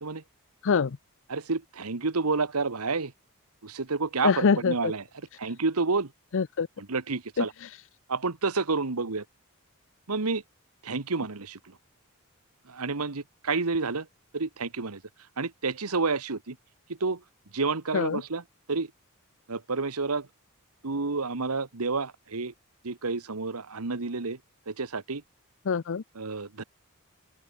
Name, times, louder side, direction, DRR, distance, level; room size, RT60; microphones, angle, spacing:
voice 1, 0.6-1.0 4.2-4.9 6.3-6.7 7.4-7.7 17.9-18.2 25.7-26.0, left 5 dB, 60° left, 0.6 m, -25 dB
voice 2, 1.3-3.1 3.6-5.0 5.4-6.1 6.8-7.5 8.1-9.2 10.1-10.4 10.8-11.8 12.7-14.1 14.3-15.0 15.4-16.6 16.9-17.2 17.5-18.4 18.7-18.9 19.5-20.3 20.8-22.5 22.8-24.4 24.7-25.2 26.1-26.6, right 4 dB, 85° right, 1.4 m, -29 dB
open air
head